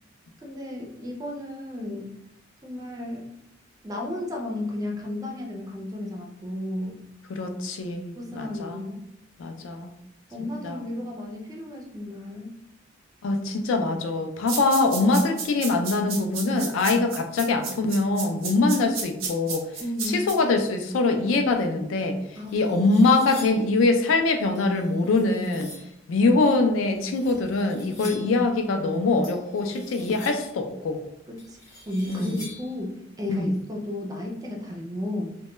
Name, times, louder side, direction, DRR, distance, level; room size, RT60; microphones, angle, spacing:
voice 1, 0.4-2.2 2.6-3.3 3.8-7.0 8.2-9.0 10.3-12.6 19.8-20.4 22.4-23.0 28.0-28.3 31.3-35.4, left 1 dB, 20° right, 0 dB, 0.4 m, -33 dB
voice 2, 7.3-8.8 9.4-9.9 10.6-10.8 13.2-19.6 20.1-22.2 22.5-25.7 26.1-31.0 32.1-32.3 33.3-33.5, left 3 dB, 75° left, 6 dB, 0.3 m, -23 dB
sound 1, 14.5-20.3, right 5 dB, 90° right, 0.6 m, -32 dB
sound 2, 22.3-23.7 24.6-26.0 27.0-28.4 29.2-30.6 31.4-32.8, left 2 dB, 20° left, 0.7 m, -46 dB
2.1 x 2.1 x 3.0 m, 0.80 s
head